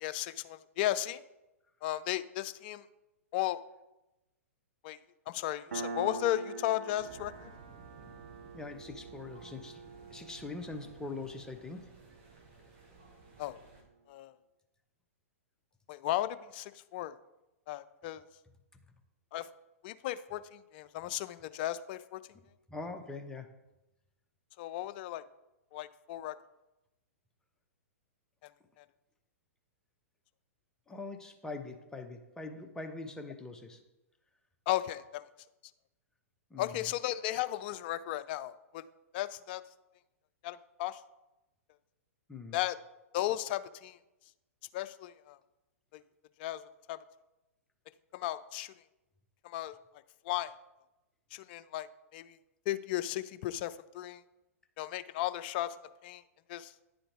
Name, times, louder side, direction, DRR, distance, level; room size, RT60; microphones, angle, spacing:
voice 1, 0.0-1.2 1.8-2.8 3.3-3.6 4.8-5.0 5.3-7.5 13.4-13.6 14.1-14.3 15.9-17.1 17.7-18.2 19.3-19.5 19.8-22.2 24.6-25.2 25.7-26.3 28.4-28.5 28.8-28.9 34.7-35.2 36.6-38.8 39.1-39.6 40.4-41.0 42.5-42.8 43.1-44.0 44.7-45.4 45.9-46.0 46.4-46.6 46.9-47.0 48.1-48.7 49.4-49.7 50.2-50.5 51.3-51.9 52.1-52.4 52.7-54.2 54.8-55.8 56.0-56.2 56.5-56.7, left 14 dB, 40° left, 14 dB, 0.4 m, -35 dB
Piano, 5.7-12.9, right 4 dB, 70° right, 0.7 m, -45 dB
sound 1, 7.0-13.8, right 4 dB, 45° right, 1.6 m, -56 dB
voice 2, 8.5-9.8 10.1-11.9 22.7-23.6 30.9-33.8 36.5-36.8 42.3-42.6, left 3 dB, 10° left, 5 dB, 0.7 m, -43 dB
9.9 x 3.9 x 4.5 m, 0.98 s
figure-of-eight pair, 110°, 8 cm